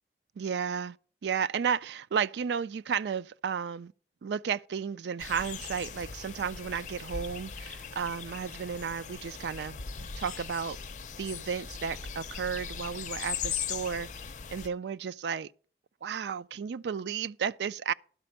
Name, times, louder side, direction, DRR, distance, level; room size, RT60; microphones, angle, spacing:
voice 1, 0.4-1.0 1.2-3.9 4.2-10.8 11.2-14.1 14.5-15.5 16.0-17.9, right 7 dB, 75° right, 0.3 m, -33 dB
sound 1, 5.2-14.7, left 7 dB, 45° left, 0.6 m, -39 dB
12.0 x 4.3 x 8.0 m
head